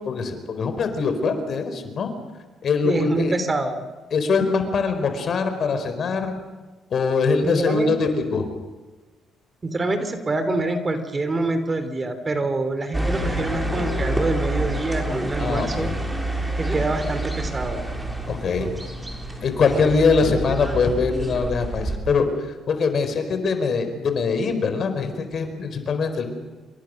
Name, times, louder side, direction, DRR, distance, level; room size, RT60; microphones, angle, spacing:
voice 1, 0.0-2.1 2.6-3.3 4.1-6.3 6.9-8.5 15.4-15.9 18.3-18.7 19.4-26.2, left 4 dB, 55° left, 8 dB, 4.3 m, -23 dB
voice 2, 2.8-3.8 7.4-8.1 9.6-15.9 16.6-17.8, right 2 dB, 30° right, 10 dB, 3.1 m, -26 dB
sound 1, 12.9-22.0, right 1 dB, 10° right, 4.8 m, -28 dB
27.5 x 24.0 x 6.5 m, 1.3 s
supercardioid pair, 70°, 0 cm